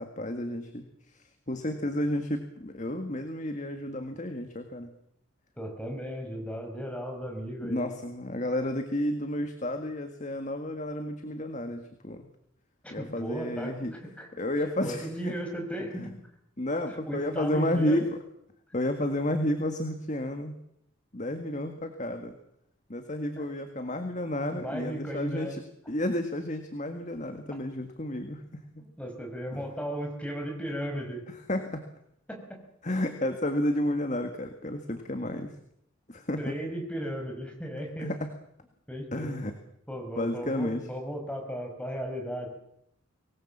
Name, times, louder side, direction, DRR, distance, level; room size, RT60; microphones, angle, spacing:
voice 1, 0.0-4.9 7.6-12.3 12.9-14.0 14.4-15.3 15.9-16.1 16.6-18.1 18.7-20.6 21.1-22.4 22.9-25.6 25.9-28.4 29.5-29.6 31.3-31.8 32.8-35.5 36.1-36.5 38.0-38.3 39.1-39.6 40.1-40.8, left 1 dB, 35° left, 7 dB, 1.8 m, -31 dB
voice 2, 5.6-7.9 12.8-14.3 14.8-16.1 17.0-18.0 23.4-23.5 24.5-25.6 28.8-31.2 32.3-32.6 36.4-38.1 38.9-39.3 39.9-42.5, equal, 5° left, 2 dB, 5.2 m, -36 dB
24.5 x 19.5 x 7.4 m, 0.75 s
head